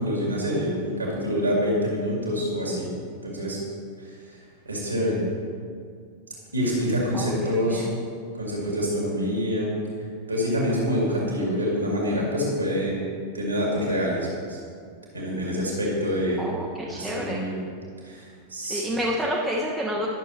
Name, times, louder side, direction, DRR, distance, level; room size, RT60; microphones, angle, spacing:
voice 1, 0.0-2.9 3.2-3.6 4.0-4.4 4.6-5.2 6.5-7.8 8.3-9.7 10.3-13.0 13.3-14.6 15.1-16.4 16.8-17.5 18.0-18.8, equal, 80° right, -4 dB, 2.2 m, -26 dB
voice 2, 7.1-8.0 16.4-17.5 18.7-20.1, equal, 5° right, -3 dB, 0.8 m, -29 dB
11.0 x 6.6 x 3.1 m, 2.2 s
figure-of-eight pair, 90°, 0 cm